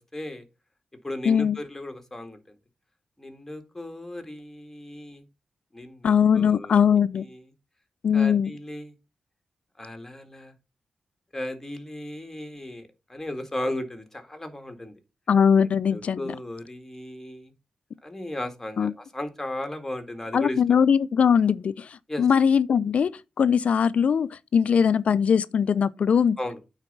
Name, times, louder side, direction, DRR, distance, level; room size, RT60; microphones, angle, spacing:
voice 1, 0.1-0.5 1.0-2.6 3.2-5.2 5.7-6.8 7.1-7.4 8.1-8.9 9.8-10.5 11.3-14.9 15.9-17.5 18.0-20.6 22.1-22.3 26.4-26.6, left 1 dB, 15° left, 1.8 m, -36 dB
voice 2, 1.3-1.6 6.0-7.3 8.0-8.5 15.3-16.2 18.8-18.9 20.3-21.9 22.2-23.1 23.4-26.4, left 7 dB, 65° left, 0.4 m, -21 dB
9.0 x 4.0 x 5.4 m
cardioid pair, 65°, 2 cm